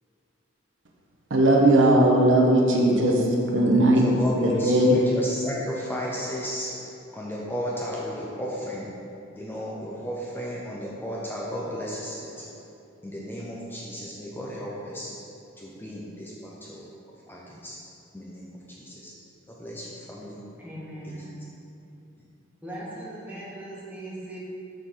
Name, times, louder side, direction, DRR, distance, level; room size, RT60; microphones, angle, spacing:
voice 1, 1.3-4.0 4.4-5.0, right 1 dB, 65° right, 0 dB, 0.9 m, -19 dB
voice 2, 4.0-8.9 9.4-12.5 13.0-15.1 15.6-16.8 17.3-17.8 18.1-19.1 19.5-20.4 21.0-21.3, equal, 10° left, -5 dB, 0.6 m, -34 dB
voice 3, 20.6-21.4 22.6-24.4, right 1 dB, 10° right, -8 dB, 1.5 m, -39 dB
6.7 x 6.5 x 3.8 m, 2.7 s
head